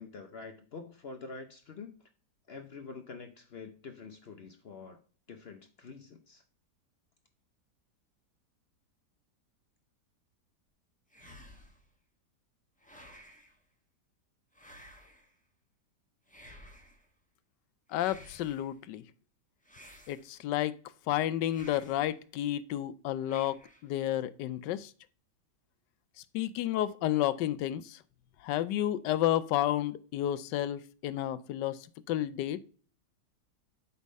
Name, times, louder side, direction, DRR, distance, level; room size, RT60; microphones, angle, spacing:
voice 1, 0.0-1.9 2.5-5.0 5.3-6.4, left 4 dB, 60° left, 0.6 m, -46 dB
sound 1, 11.1-11.9 12.8-13.6 14.5-15.3 16.3-17.1 17.9-18.7 19.6-20.5 21.5-22.1 23.2-23.9, equal, 5° left, 0.8 m, -54 dB
voice 2, 17.9-19.0 20.1-20.8 21.1-24.9 26.3-28.0 28.4-32.6, left 12 dB, 85° left, 1.2 m, -31 dB
8.3 x 3.5 x 5.3 m
omnidirectional pair, 1.8 m